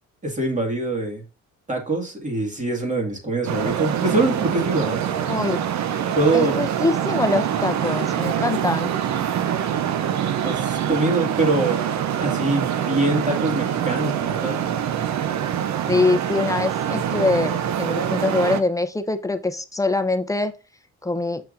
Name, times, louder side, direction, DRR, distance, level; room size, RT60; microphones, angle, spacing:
voice 1, 0.2-1.2 1.7-5.1 6.1-6.6 10.4-11.9 12.2-14.6, right 2 dB, 25° right, 1 dB, 2.1 m, -24 dB
Traffic noise roadway noise, 3.5-18.6, right 9 dB, 65° right, 0.7 m, -25 dB
voice 2, 5.1-5.6 6.3-8.9 15.9-20.5 21.0-21.4, left 3 dB, 10° left, 9 dB, 0.6 m, -23 dB
7.0 x 5.5 x 2.6 m, 0.33 s
cardioid pair, 90°, 30 cm